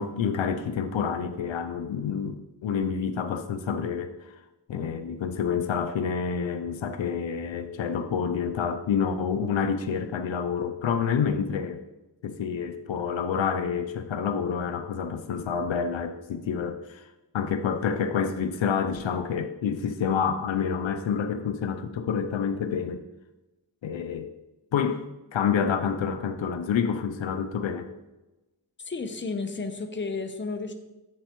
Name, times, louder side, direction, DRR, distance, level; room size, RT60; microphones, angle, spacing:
voice 1, 0.0-4.3 4.7-11.8 12.2-17.1 17.3-23.0 23.8-24.3 24.7-27.9, left 6 dB, 70° left, 8 dB, 0.7 m, -28 dB
voice 2, 28.8-30.7, left 4 dB, 25° left, 6 dB, 0.8 m, -32 dB
8.0 x 7.6 x 3.0 m, 1.0 s
wide cardioid pair, 80°, 47 cm